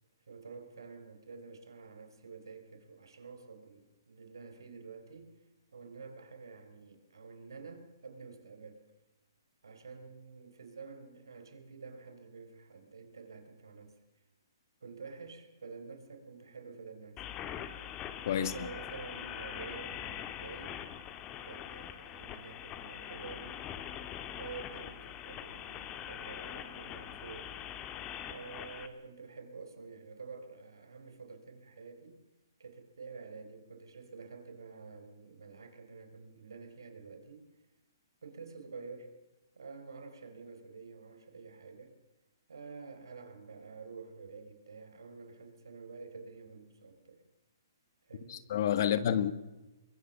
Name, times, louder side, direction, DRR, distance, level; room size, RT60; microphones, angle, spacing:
voice 1, 0.3-5.3 5.7-8.8 9.6-14.0 14.8-17.3 18.4-20.8 21.5-23.6 24.4-27.6 28.3-32.2 32.6-37.4 38.2-39.2 39.5-42.0 42.5-47.2 48.1-48.5 48.8-49.0, right 4 dB, 85° right, 4.7 m, -49 dB
sound 1, 17.2-28.9, left 10 dB, 25° left, 1.9 m, -43 dB
voice 2, 48.3-49.3, left 10 dB, 55° left, 1.8 m, -29 dB
23.0 x 22.5 x 6.8 m
hypercardioid pair, 140°, 2 cm